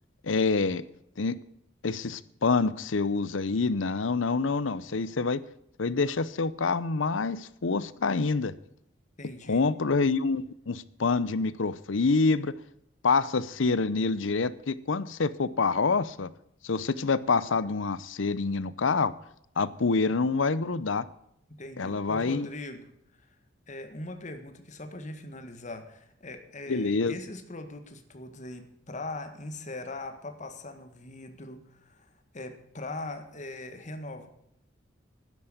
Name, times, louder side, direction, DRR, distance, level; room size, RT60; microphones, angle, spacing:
voice 1, 0.2-0.8 1.2-1.4 1.8-5.4 5.8-8.5 9.5-12.5 13.0-16.3 16.6-19.1 19.6-21.0 21.8-22.5 26.7-27.1, left 4 dB, 75° left, 17 dB, 0.7 m, -26 dB
voice 2, 9.2-9.7 21.6-22.9 23.7-34.3, left 2 dB, 40° left, 7 dB, 1.7 m, -41 dB
11.5 x 10.5 x 8.0 m, 0.75 s
head